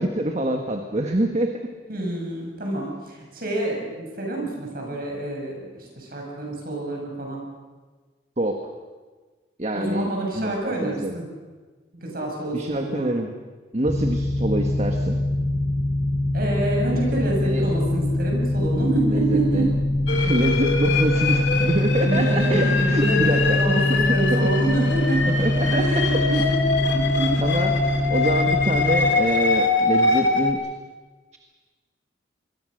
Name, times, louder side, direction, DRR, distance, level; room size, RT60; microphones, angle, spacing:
voice 1, 0.0-1.6 8.4-8.6 9.6-11.1 12.5-13.3 13.7-15.2 16.9-17.7 19.1-19.6 20.1-24.5 25.3-26.3 27.4-27.7 28.1-30.6, right 1 dB, 35° right, 4 dB, 1.6 m, -26 dB
voice 2, 1.9-7.4 9.7-11.3 11.9-13.1 16.3-19.7 21.1-21.3 22.1-26.6 26.9-27.4, right 2 dB, 50° right, -1 dB, 7.3 m, -27 dB
sound 1, 13.9-29.1, left 1 dB, 5° right, 3.6 m, -23 dB
sound 2, 20.1-30.5, left 3 dB, 75° left, 2.8 m, -24 dB
26.5 x 21.5 x 6.6 m, 1.3 s
head